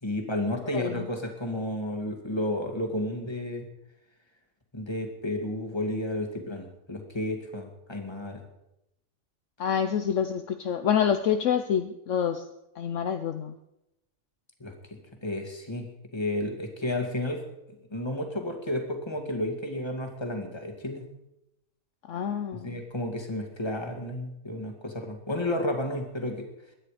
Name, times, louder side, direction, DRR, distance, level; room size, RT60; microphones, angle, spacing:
voice 1, 0.0-3.7 4.7-8.4 14.6-14.7 15.2-15.9 16.1-17.4 17.7-21.1 22.6-26.5, left 1 dB, 20° left, 4 dB, 2.0 m, -32 dB
voice 2, 0.7-1.0 9.6-12.4 12.8-13.5 22.1-22.8, left 8 dB, 65° left, 8 dB, 1.0 m, -27 dB
22.0 x 9.6 x 4.9 m, 0.86 s
omnidirectional pair, 1.4 m